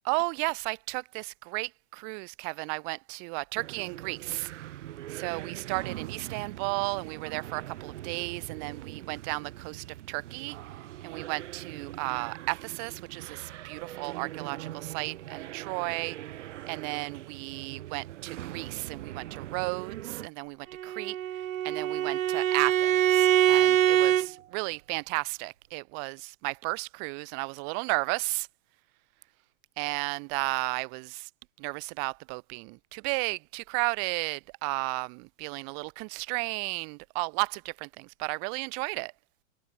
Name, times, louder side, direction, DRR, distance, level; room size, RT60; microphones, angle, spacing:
voice 1, 0.0-4.5 5.1-10.6 11.0-16.2 16.7-21.2 21.6-28.5 29.8-31.3 31.6-39.1, right 40 dB or more, 40° right, 3.2 m, -34 dB
sound 1, 3.6-20.3, right 14 dB, 60° right, 3.6 m, -42 dB
Bowed string instrument, 20.7-24.3, right 11 dB, 75° right, 1.2 m, -24 dB
hypercardioid pair, 130°, 41 cm